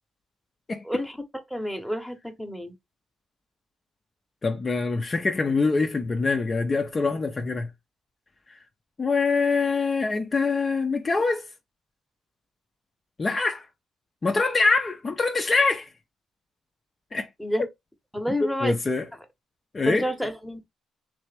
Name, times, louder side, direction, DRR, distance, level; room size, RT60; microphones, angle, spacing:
voice 1, 0.8-1.2 1.5-2.7 17.4-17.7 18.1-18.8 19.9-20.7, equal, ahead, 0.9 m, -29 dB
voice 2, 4.4-7.7 9.0-11.4 13.2-13.7 14.2-15.9 17.1-17.3 18.4-19.1 19.7-20.1, left 4 dB, 30° left, 0.5 m, -24 dB
3.3 x 3.2 x 3.3 m
cardioid pair, 100°, 0 cm